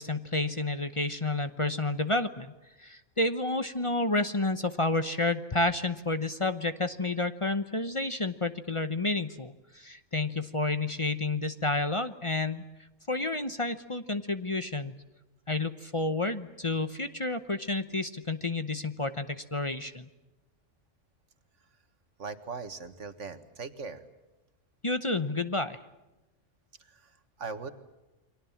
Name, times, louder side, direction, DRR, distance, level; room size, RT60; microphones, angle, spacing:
voice 1, 0.0-2.5 2.8-12.6 13.1-15.0 15.5-20.1 24.8-25.8, left 2 dB, 30° left, 10 dB, 0.9 m, -30 dB
voice 2, 22.2-24.0 26.8-27.7, right 4 dB, 80° right, 10 dB, 2.0 m, -40 dB
29.5 x 23.5 x 7.3 m, 1.0 s
omnidirectional pair, 1.3 m